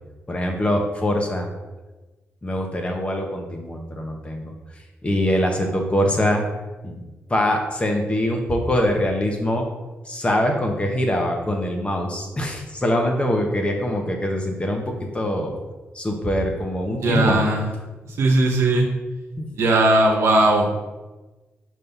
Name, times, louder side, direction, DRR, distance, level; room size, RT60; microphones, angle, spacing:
voice 1, 0.3-1.5 2.4-6.4 6.8-7.0 7.3-9.6 10.0-15.6 15.9-17.5 19.4-19.5, left 1 dB, 25° left, 2 dB, 1.2 m, -23 dB
voice 2, 17.0-17.7 18.2-18.9 19.5-20.8, right 2 dB, 80° right, 0 dB, 1.0 m, -18 dB
5.4 x 3.2 x 5.4 m, 1.2 s
cardioid pair, 75°, 5 cm